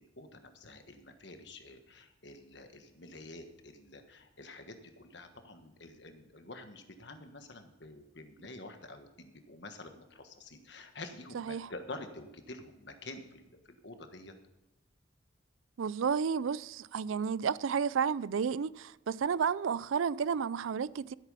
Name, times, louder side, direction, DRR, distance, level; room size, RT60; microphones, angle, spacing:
voice 1, 0.0-14.3, left 2 dB, 55° left, 1.4 m, -48 dB
voice 2, 11.3-11.7 15.8-21.1, right 6 dB, 80° right, 0.4 m, -32 dB
14.0 x 8.2 x 5.5 m
head